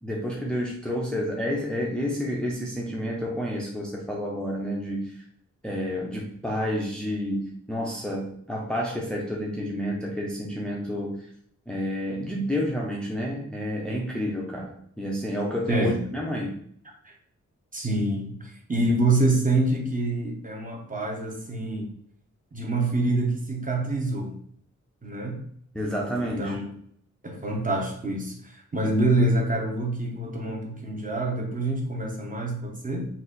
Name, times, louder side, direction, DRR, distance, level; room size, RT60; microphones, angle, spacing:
voice 1, 0.0-5.2 5.6-11.3 11.7-16.6 25.7-26.6, equal, 5° left, -2 dB, 0.5 m, -30 dB
voice 2, 15.7-16.0 17.0-17.1 17.7-21.9 22.5-24.4 25.0-25.4 26.4-26.7 27.2-33.1, right 2 dB, 25° right, 0 dB, 0.9 m, -26 dB
4.0 x 2.5 x 3.9 m, 0.64 s
wide cardioid pair, 155°, 30 cm